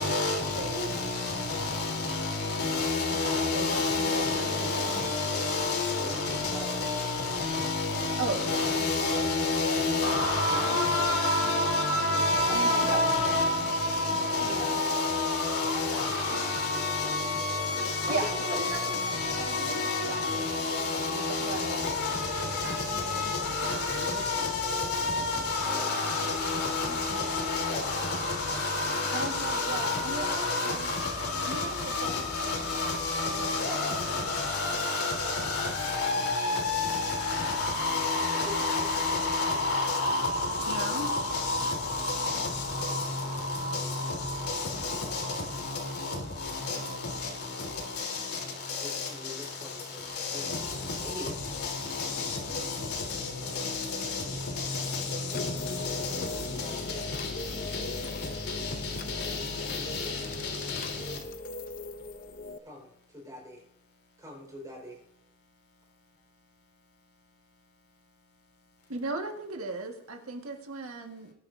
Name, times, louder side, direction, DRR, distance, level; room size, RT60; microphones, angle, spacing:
voice 1, 0.0-61.2, left 3 dB, 85° left, 3.4 m, -30 dB
voice 2, 0.5-1.0 3.1-5.0 8.2-9.3 10.0-10.6 12.3-14.6 16.3-16.5 18.1-21.8 22.6-24.8 26.8-27.2 29.1-30.9 31.3-34.3 40.7-41.1 68.9-71.3, right 3 dB, 70° right, 1.6 m, -38 dB
voice 3, 6.0-7.5 14.5-14.9 18.1-18.9 25.7-26.0 38.4-39.3 44.7-44.9 48.7-50.6 51.0-51.4 62.6-63.6 64.2-65.0, left 1 dB, 15° right, 4.3 m, -43 dB
sound 1, 55.3-62.6, left 2 dB, 40° left, 0.7 m, -39 dB
21.5 x 10.5 x 2.6 m
head